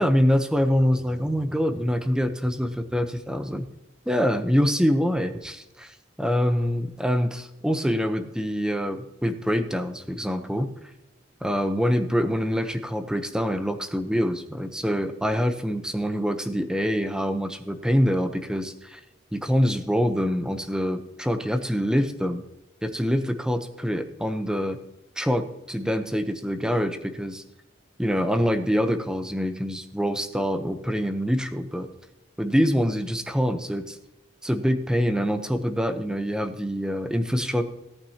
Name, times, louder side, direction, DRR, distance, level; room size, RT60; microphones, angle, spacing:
voice 1, 0.0-3.7 4.1-10.7 11.4-19.0 19.3-22.4 22.8-24.8 25.2-27.4 28.0-31.9 32.4-34.0 34.4-37.6, equal, 5° right, 8 dB, 0.7 m, -25 dB
17.5 x 8.9 x 2.8 m, 0.95 s
head